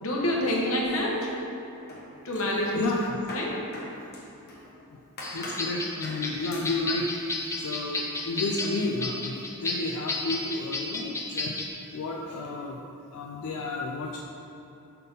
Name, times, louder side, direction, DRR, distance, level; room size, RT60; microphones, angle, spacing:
voice 1, 0.0-1.3 2.2-2.8 3.3-3.6, left 1 dB, 65° left, -2 dB, 1.1 m, -27 dB
sound 1, 0.8-1.6 1.9-4.7 5.2-5.7 6.0-6.2 6.5-6.7, left 1 dB, 45° left, 1.1 m, -42 dB
voice 2, 2.4-3.2 4.7-11.5 11.9-12.8 13.1-14.2, left 2 dB, 90° left, -1 dB, 0.5 m, -32 dB
sound 2, 5.2-11.7, left 2 dB, 15° left, 0.5 m, -33 dB
5.4 x 4.2 x 5.4 m, 3.0 s
head